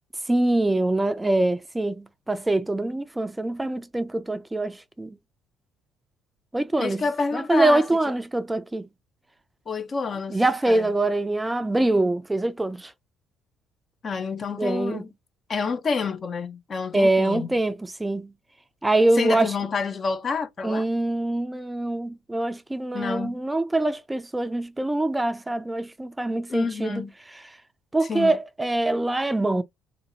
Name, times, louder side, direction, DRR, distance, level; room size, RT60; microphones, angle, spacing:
voice 1, 0.3-5.2 6.5-7.0 7.3-8.9 10.3-12.9 14.6-15.0 16.9-18.3 18.8-19.6 20.6-27.0 27.9-29.6, right 2 dB, 15° right, 0.4 m, -24 dB
voice 2, 6.8-7.8 9.7-10.9 14.0-15.1 15.5-17.5 19.1-20.9 22.9-23.4 26.5-27.1 28.1-28.4, left 5 dB, 40° left, 0.6 m, -29 dB
2.7 x 2.7 x 3.8 m
hypercardioid pair, 55°, 0 cm